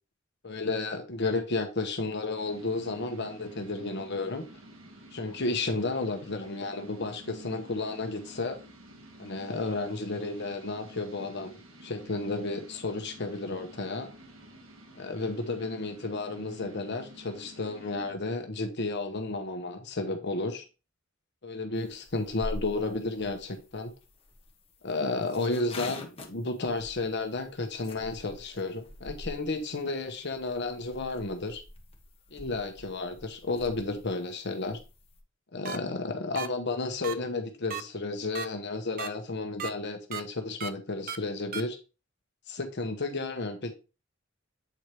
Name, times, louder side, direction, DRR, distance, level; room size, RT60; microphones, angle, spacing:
voice 1, 0.4-4.4 5.1-8.6 9.2-11.6 11.8-14.1 15.0-20.6 21.4-23.9 24.8-31.6 32.3-34.8 35.5-41.8 42.5-43.7, left 3 dB, 60° left, 1.1 m, -32 dB
sound 1, 2.4-18.1, right 1 dB, 85° right, 1.6 m, -51 dB
sound 2, 21.7-35.2, left 1 dB, 30° left, 1.3 m, -46 dB
sound 3, 35.6-35.8 36.4-36.5 37.0-37.1 37.7-37.8 38.3-38.5 39.0-39.1 39.6-39.7 40.1-40.2 40.6-40.7 41.1-41.2 41.5-41.6, right 7 dB, 45° right, 0.5 m, -34 dB
8.0 x 4.6 x 3.2 m
head